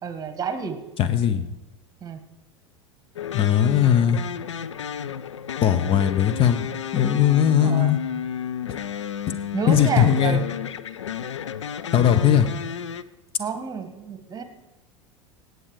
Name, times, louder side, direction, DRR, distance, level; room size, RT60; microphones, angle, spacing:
voice 1, 0.0-0.8 2.0-2.2 7.6-7.9 9.5-10.5 13.4-14.4, right 6 dB, 25° right, 10 dB, 1.6 m, -30 dB
voice 2, 1.0-1.5 3.3-4.2 5.6-8.0 8.7-8.8 9.7-10.4 11.9-12.5, left 9 dB, 35° left, 10 dB, 0.9 m, -19 dB
sound 1, 3.2-13.0, left 8 dB, 75° left, 0.5 m, -32 dB
18.5 x 8.1 x 5.0 m, 1.0 s
figure-of-eight pair, 80°, 16 cm